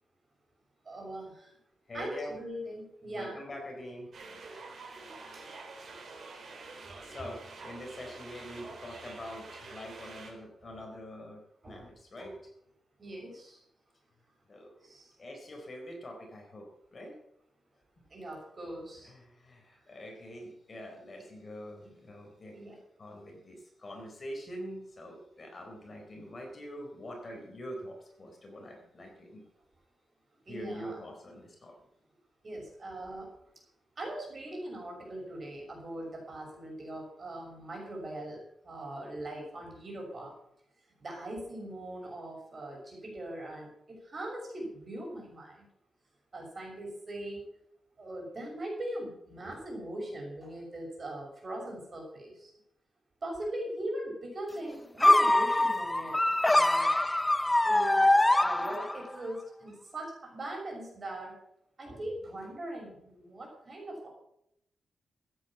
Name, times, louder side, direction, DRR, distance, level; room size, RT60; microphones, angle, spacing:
voice 1, 0.8-1.5 1.9-3.4 5.3-5.4 11.6-11.9 12.2-12.3 13.0-13.6 14.8-15.1 18.1-19.1 19.8-19.9 21.8-21.9 22.5-22.8 30.5-31.0 32.4-33.3 34.0-40.3 41.0-45.6 46.3-47.5 48.0-52.5 53.2-56.1 56.5-56.9 57.6-58.0 58.4-61.3 61.8-64.1, right 1 dB, 35° right, 0 dB, 6.4 m, -40 dB
voice 2, 1.9-2.4 3.1-4.4 7.0-12.3 14.5-14.9 15.2-17.1 19.0-22.6 23.0-29.4 30.5-31.8, equal, 35° left, 2 dB, 4.1 m, -44 dB
sound 1, 4.1-10.3, right 3 dB, 60° right, 4.1 m, -47 dB
sound 2, 55.0-59.1, left 1 dB, 10° left, 0.5 m, -24 dB
15.0 x 9.1 x 7.3 m, 0.76 s
wide cardioid pair, 135°, 0 cm